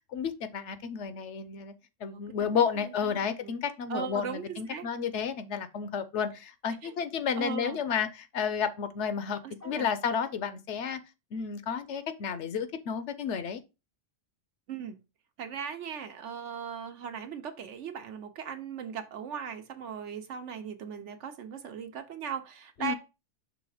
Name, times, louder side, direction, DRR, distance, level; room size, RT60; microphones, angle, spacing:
voice 1, 0.1-1.7 2.0-11.0 11.3-13.6 22.8-22.9, left 7 dB, 70° left, 0.9 m, -31 dB
voice 2, 2.0-3.5 3.9-4.9 6.8-6.9 7.4-7.8 9.4-9.9 14.7-15.0 15.4-22.9, right 7 dB, 70° right, 1.1 m, -39 dB
6.1 x 3.2 x 4.9 m
omnidirectional pair, 1.3 m